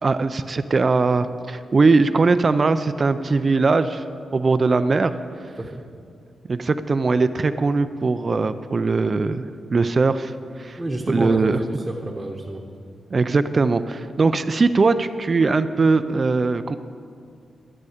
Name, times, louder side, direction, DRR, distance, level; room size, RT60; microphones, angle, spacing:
voice 1, 0.0-4.0 4.3-5.1 6.5-10.8 11.1-11.6 13.1-16.8, right 3 dB, 40° right, 11 dB, 0.4 m, -20 dB
voice 2, 10.8-12.6, right 1 dB, 15° right, -1 dB, 1.0 m, -28 dB
12.0 x 11.0 x 5.0 m, 2.3 s
cardioid pair, 105°, 0 cm